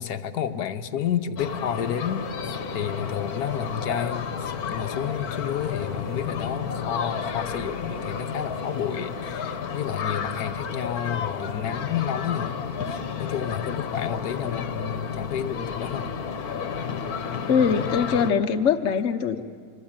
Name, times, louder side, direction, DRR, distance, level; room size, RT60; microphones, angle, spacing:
voice 1, 0.0-2.3 2.7-12.6 12.9-16.1, left 9 dB, 90° left, 8 dB, 1.5 m, -31 dB
sound 1, 1.4-18.3, left 6 dB, 70° left, 1.6 m, -31 dB
sound 2, 1.7-10.4, right 3 dB, 90° right, 5.0 m, -46 dB
voice 2, 17.5-19.4, left 6 dB, 55° left, 7 dB, 1.2 m, -22 dB
25.0 x 25.0 x 8.8 m, 2.1 s
omnidirectional pair, 1.7 m